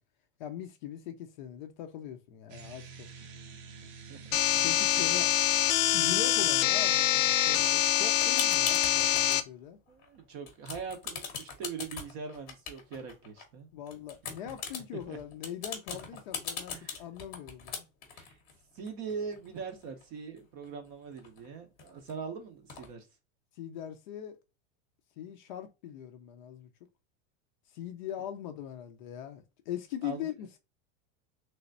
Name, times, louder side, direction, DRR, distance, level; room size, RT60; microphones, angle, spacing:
voice 1, 0.4-3.1 4.6-5.3 5.9-9.8 13.7-17.9 23.6-24.4 25.2-26.7 27.7-30.6, left 10 dB, 40° left, 0.4 m, -41 dB
sound 1, 2.5-7.6, right 5 dB, 85° right, 0.9 m, -49 dB
voice 2, 3.8-4.4 9.9-13.7 14.2-14.3 15.1-15.2 16.7-17.0 18.1-18.4 18.7-23.1 30.0-30.3, right 5 dB, 30° right, 0.5 m, -42 dB
sound 2, 4.3-9.4, left 12 dB, 90° left, 0.6 m, -25 dB
sound 3, 7.6-9.4 9.9-10.2 10.5-13.4 13.9-20.0 20.4-20.5 20.6-22.1 22.7-22.9, left 6 dB, 25° left, 0.8 m, -41 dB
3.3 x 3.0 x 2.5 m
supercardioid pair, 175°, 39 cm